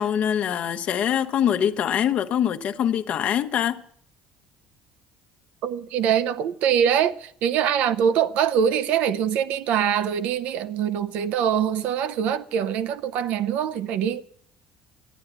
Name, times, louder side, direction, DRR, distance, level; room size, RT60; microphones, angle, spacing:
voice 1, 0.0-3.8, left 9 dB, 55° left, 0.9 m, -24 dB
voice 2, 5.6-14.2, right 8 dB, 70° right, 0.7 m, -23 dB
11.0 x 8.8 x 9.3 m
supercardioid pair, 85°, 3 cm